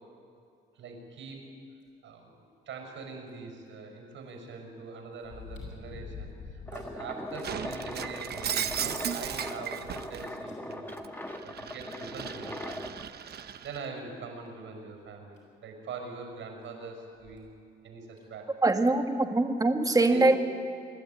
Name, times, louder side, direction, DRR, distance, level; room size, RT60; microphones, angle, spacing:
voice 1, 0.7-1.4 2.0-13.0 13.6-17.5 17.8-18.5 20.1-20.3, right 4 dB, 80° right, 3 dB, 6.0 m, -43 dB
sound 1, 3.3-3.4 5.2-6.9 7.3-7.4 7.9-8.0 8.4-9.5 10.5-10.6 12.0-12.1 12.7-12.8 13.5-13.7 15.0-15.1 15.4-15.5 17.2-17.5 18.2-18.3, left 4 dB, 60° left, 7.5 m, -45 dB
sound 2, 6.7-13.0, left 1 dB, 10° left, 1.2 m, -40 dB
Shatter, 7.4-10.3 10.7-13.9, right 8 dB, 55° right, 0.9 m, -36 dB
voice 2, 18.6-20.4, right 2 dB, 20° right, 5 dB, 1.7 m, -23 dB
26.0 x 11.5 x 9.2 m, 2.4 s
cardioid pair, 90°, 20 cm